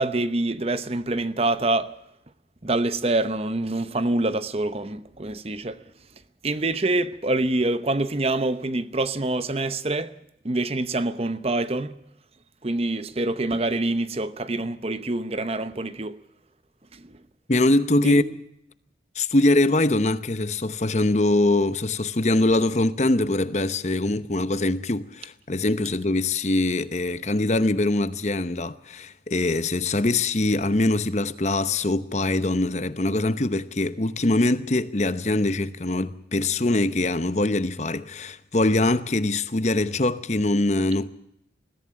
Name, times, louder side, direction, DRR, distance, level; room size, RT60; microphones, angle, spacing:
voice 1, 0.0-1.9 2.6-5.8 6.4-10.1 10.4-12.0 12.6-16.2 16.9-17.1 18.0-18.3, right 2 dB, 35° right, 0.8 m, -26 dB
voice 2, 17.5-18.2 19.2-41.1, left 2 dB, 40° left, 0.9 m, -23 dB
21.5 x 15.0 x 8.8 m
head